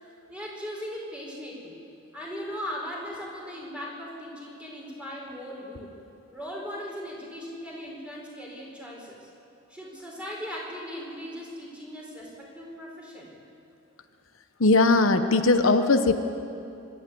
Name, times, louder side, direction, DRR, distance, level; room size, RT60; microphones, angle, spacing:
voice 1, 0.3-1.8 2.1-5.9 6.3-9.3 9.7-13.3, equal, 5° right, -3 dB, 4.8 m, -38 dB
voice 2, 14.6-16.1, left 3 dB, 90° left, 8 dB, 1.1 m, -19 dB
24.5 x 12.5 x 9.5 m, 2.7 s
head